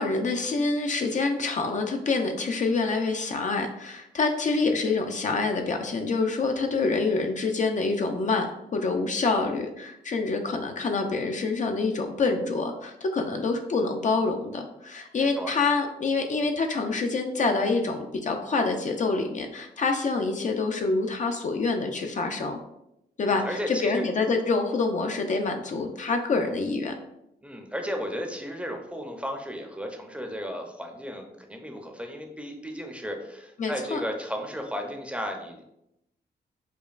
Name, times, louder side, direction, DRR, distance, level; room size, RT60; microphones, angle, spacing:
voice 1, 0.0-8.5 8.7-22.6 23.2-26.9 33.6-34.0, left 3 dB, 45° left, 4 dB, 0.4 m, -26 dB
voice 2, 15.2-15.5 23.3-24.1 27.4-35.6, equal, 5° right, 3 dB, 0.6 m, -34 dB
5.0 x 2.2 x 2.4 m, 0.83 s
cardioid pair, 70°, 18 cm